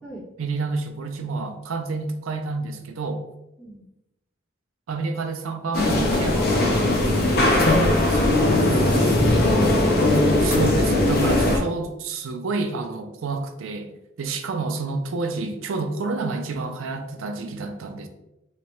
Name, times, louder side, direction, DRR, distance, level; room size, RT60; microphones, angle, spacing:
voice 1, 0.4-3.2 4.9-8.5 9.2-9.5 10.4-13.9 14.2-18.1, right 3 dB, 80° right, 7 dB, 0.5 m, -29 dB
sound 1, 5.7-11.6, left 2 dB, 50° left, 0.6 m, -19 dB
sound 2, 6.2-7.7 8.6-9.7 10.0-11.7, equal, 20° right, 1.4 m, -34 dB
voice 2, 8.9-10.4, right 1 dB, 5° left, -11 dB, 1.3 m, -37 dB
3.3 x 2.9 x 3.1 m, 0.89 s
head